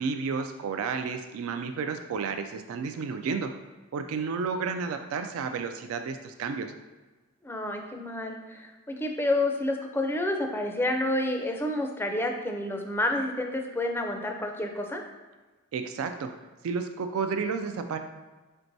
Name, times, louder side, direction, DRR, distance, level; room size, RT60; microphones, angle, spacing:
voice 1, 0.0-3.5 3.9-6.7 15.7-16.3 16.6-18.0, right 5 dB, 90° right, 7 dB, 0.3 m, -31 dB
voice 2, 7.4-15.0, left 1 dB, 10° left, 3 dB, 0.4 m, -29 dB
4.5 x 4.3 x 2.6 m, 1.3 s
head